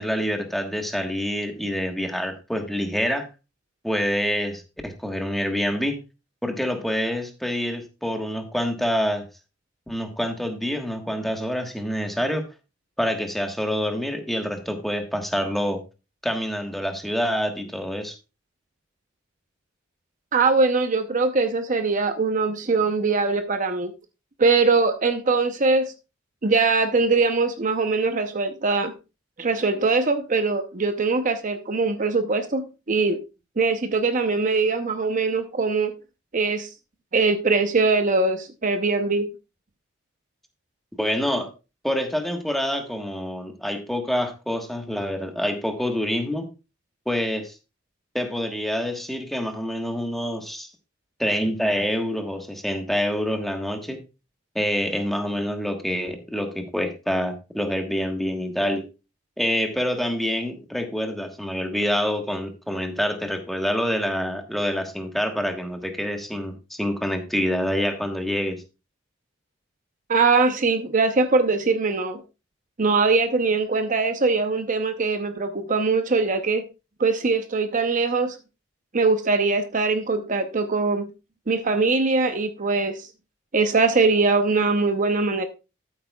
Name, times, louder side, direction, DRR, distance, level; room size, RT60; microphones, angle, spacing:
voice 1, 0.0-3.3 3.8-6.0 6.4-9.2 9.9-12.5 13.0-15.8 16.2-18.1 41.0-41.5 41.8-46.5 47.1-47.5 48.1-50.7 51.2-54.0 54.5-58.8 59.4-68.6, equal, ahead, 1.3 m, -26 dB
voice 2, 20.3-23.9 24.4-25.9 26.4-28.9 29.4-33.2 33.6-35.9 36.3-36.7 37.1-39.3 70.1-72.2 72.8-76.7 77.0-78.4 78.9-81.1 81.5-83.1 83.5-85.4, right 4 dB, 40° right, 0.7 m, -22 dB
13.5 x 8.1 x 2.3 m
head